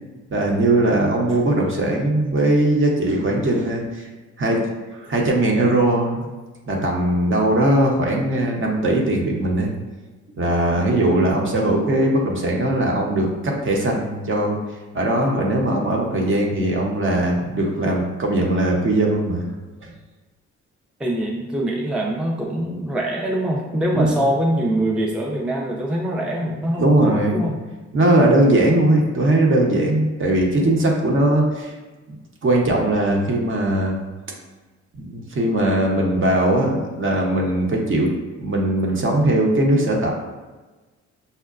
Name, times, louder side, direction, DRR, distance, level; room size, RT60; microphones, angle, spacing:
voice 1, 0.3-4.0 4.4-4.7 5.0-6.3 6.7-9.7 10.4-14.6 14.9-19.5 19.8-19.9 23.9-24.1 26.8-27.5 27.9-31.7 32.4-34.0 35.0-38.1 38.4-40.1, right 1 dB, 40° right, -1 dB, 0.8 m, -19 dB
voice 2, 21.0-27.6, right 1 dB, 5° right, -2 dB, 0.5 m, -24 dB
5.5 x 2.1 x 2.4 m, 1.2 s
cardioid pair, 90°, 30 cm